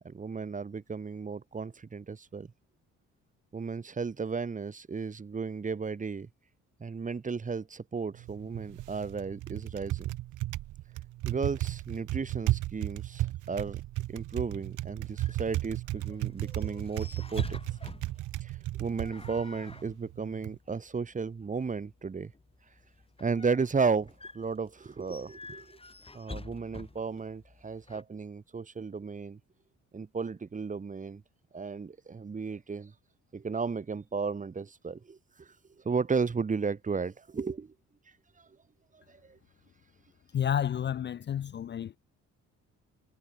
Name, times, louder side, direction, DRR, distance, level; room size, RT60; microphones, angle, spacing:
voice 1, 0.0-2.5 3.5-6.3 6.8-10.1 11.2-13.8 14.1-17.6 18.4-22.3 23.2-25.7 26.1-29.4 29.9-31.2 31.5-32.9 33.3-35.5 35.8-37.7 38.9-39.4, right 5 dB, 25° right, 1.1 m, -34 dB
Typing, 8.1-20.6, right 16 dB, 85° right, 1.2 m, -35 dB
sound 1, 14.7-28.0, left 3 dB, 20° left, 3.1 m, -49 dB
voice 2, 40.3-42.0, left 9 dB, 40° left, 0.4 m, -30 dB
cardioid pair, 90°, 30 cm